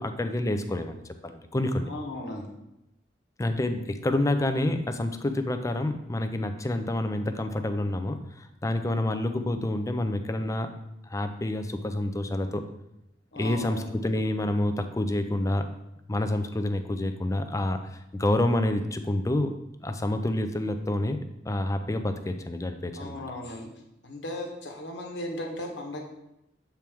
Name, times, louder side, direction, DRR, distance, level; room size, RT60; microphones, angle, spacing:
voice 1, 0.0-1.9 3.4-10.7 11.1-12.6 13.4-15.7 16.1-19.5 19.8-21.2 21.4-23.2, left 1 dB, 20° left, 8 dB, 0.4 m, -28 dB
voice 2, 1.8-2.5 13.3-13.9 22.9-23.7 24.0-26.0, left 1 dB, 85° left, 1 dB, 1.2 m, -36 dB
7.3 x 4.4 x 3.5 m, 0.86 s
head